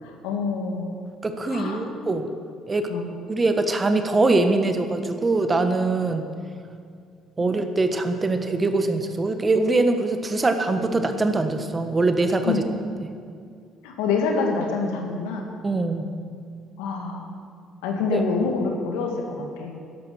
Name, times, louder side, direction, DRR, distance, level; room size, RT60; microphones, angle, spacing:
voice 1, 0.0-0.9 1.4-1.8 2.9-3.1 6.0-6.1 7.4-7.5 12.4-12.6 13.8-15.5 16.8-17.3 17.8-19.8, left 4 dB, 85° left, 2 dB, 2.1 m, -26 dB
voice 2, 1.2-2.3 2.7-2.9 3.3-6.2 7.4-12.5 13.0-13.1 15.6-16.1 18.1-18.2, right 2 dB, 30° right, 7 dB, 1.4 m, -23 dB
12.5 x 11.0 x 6.3 m, 2.2 s
supercardioid pair, 70°, 0 cm